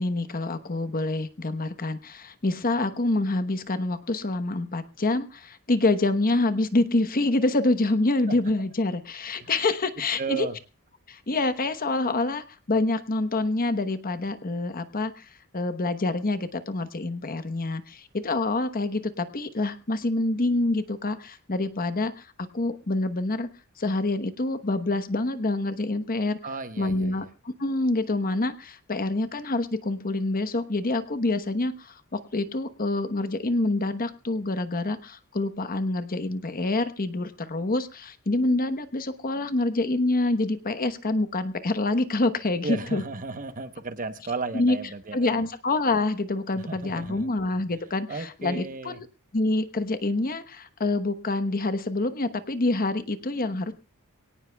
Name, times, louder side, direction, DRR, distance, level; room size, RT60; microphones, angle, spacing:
voice 1, 0.0-10.5 11.1-15.3 15.5-23.5 23.8-26.4 26.8-43.0 44.5-44.8 45.1-49.1 49.3-53.7, left 2 dB, 40° left, 11 dB, 1.1 m, -26 dB
voice 2, 10.2-10.6 26.4-27.3 42.6-45.4 46.5-47.3 48.1-49.0, right 3 dB, 35° right, 9 dB, 1.0 m, -34 dB
24.0 x 18.0 x 2.3 m, 0.33 s
head